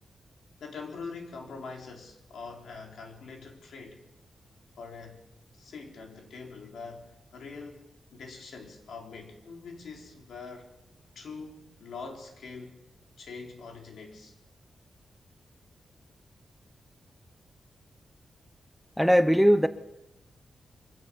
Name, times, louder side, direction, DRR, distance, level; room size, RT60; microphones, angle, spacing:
voice 1, 0.6-4.0 4.8-5.2 5.5-7.9 8.1-10.7 11.2-12.8 13.2-14.3, left 4 dB, 85° left, 3.7 m, -43 dB
voice 2, 19.0-19.7, equal, ahead, 0.7 m, -19 dB
24.0 x 16.0 x 6.9 m
wide cardioid pair, 150°, 0 cm